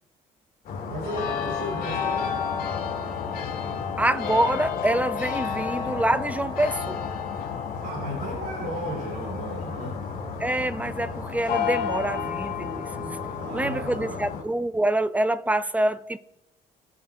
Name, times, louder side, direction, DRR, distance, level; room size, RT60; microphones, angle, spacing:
sound 1, 0.6-14.4, left 6 dB, 60° left, 2.0 m, -31 dB
voice 1, 0.9-2.3 7.8-10.0 13.4-14.2, right 1 dB, 65° right, 3.2 m, -34 dB
voice 2, 4.0-7.1 10.4-13.2 13.5-16.2, right 1 dB, 10° right, 0.4 m, -26 dB
18.0 x 7.0 x 2.2 m
cardioid pair, 110°, 17 cm